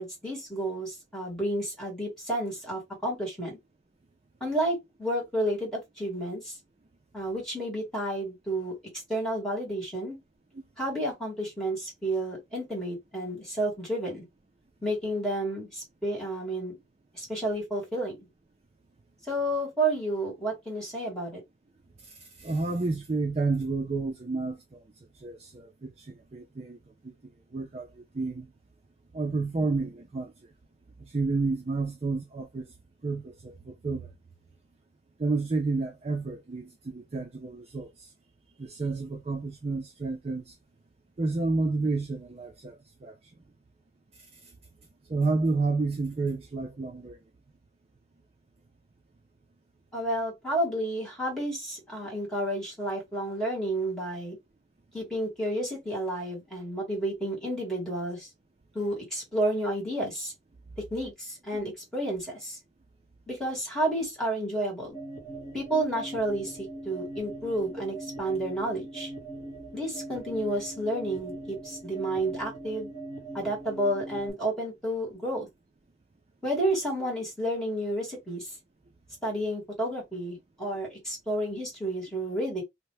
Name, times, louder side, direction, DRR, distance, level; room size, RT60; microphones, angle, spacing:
voice 1, 0.0-3.6 4.4-6.6 7.1-8.8 9.1-10.2 10.8-14.2 14.8-16.8 17.1-18.3 19.3-21.4 49.9-54.4 54.9-58.3 58.7-60.3 60.9-62.6 63.3-65.0 65.5-69.1 69.7-72.9 73.3-75.5 76.4-78.5 79.2-82.6, right 1 dB, 5° left, 1.8 m, -31 dB
voice 2, 22.4-24.8 25.2-26.8 27.0-27.1 27.5-28.5 29.1-30.3 31.1-32.7 33.0-34.1 35.2-38.1 38.6-40.5 41.2-43.2 45.1-47.2, right 3 dB, 35° right, 0.4 m, -30 dB
sound 1, 64.9-74.3, right 2 dB, 25° left, 1.0 m, -41 dB
2.8 x 2.1 x 3.2 m
head